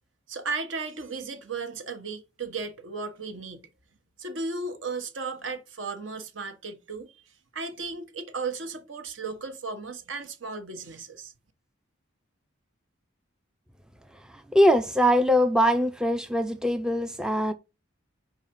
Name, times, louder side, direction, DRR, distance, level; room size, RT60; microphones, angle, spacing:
voice 1, 0.3-3.7 4.2-7.1 7.5-11.3, right 4 dB, 70° right, 1.1 m, -35 dB
voice 2, 14.5-17.5, equal, 5° right, 0.3 m, -22 dB
4.8 x 4.0 x 5.7 m
head